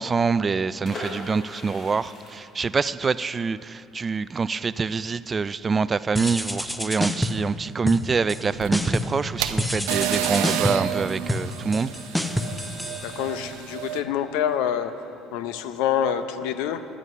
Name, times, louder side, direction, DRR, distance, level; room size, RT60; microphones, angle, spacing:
voice 1, 0.0-11.9, right 5 dB, 30° right, 17 dB, 0.3 m, -25 dB
sound 1, 0.8-6.5 6.8-6.9 7.1-7.4, left 1 dB, 55° left, 3.4 m, -41 dB
sound 2, 6.2-7.5 7.9-8.4 8.7-9.2 9.6-13.6, left 1 dB, 5° left, 0.7 m, -28 dB
sound 3, 8.5-14.0, right 11 dB, 85° right, 0.5 m, -30 dB
voice 2, 13.0-14.9 15.3-16.8, left 9 dB, 80° left, 11 dB, 0.6 m, -26 dB
11.5 x 10.5 x 5.5 m, 2.9 s
supercardioid pair, 85°, 0 cm